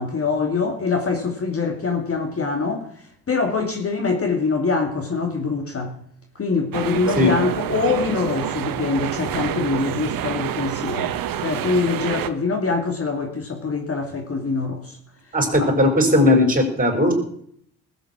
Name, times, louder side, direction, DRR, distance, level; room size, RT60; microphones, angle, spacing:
voice 1, 0.0-2.9 3.3-5.9 6.3-11.1 11.4-15.0 15.6-15.7, left 4 dB, 35° left, 2.5 m, -24 dB
sound 1, 6.7-12.3, right 11 dB, 55° right, 1.2 m, -27 dB
voice 2, 15.3-17.1, left 1 dB, 20° right, 5.7 m, -17 dB
19.5 x 8.1 x 6.2 m
hypercardioid pair, 50°, 42 cm